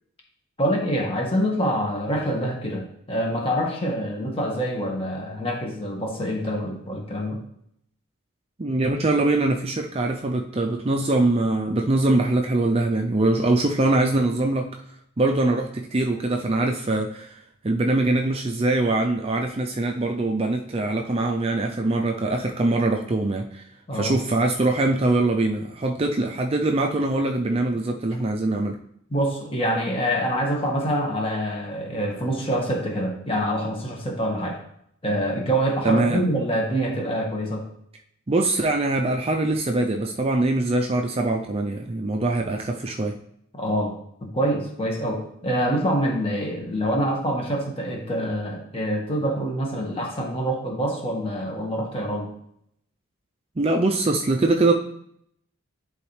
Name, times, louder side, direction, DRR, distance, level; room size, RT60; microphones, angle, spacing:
voice 1, 0.6-7.4 23.9-24.1 29.1-34.6 35.0-37.6 43.5-43.9 44.2-52.3, equal, 25° left, 0 dB, 1.5 m, -26 dB
voice 2, 8.6-14.7 15.2-23.6 23.9-28.8 35.8-36.2 38.3-43.2 53.6-54.7, right 2 dB, 30° right, 3 dB, 0.4 m, -23 dB
11.0 x 3.9 x 3.2 m, 0.71 s
head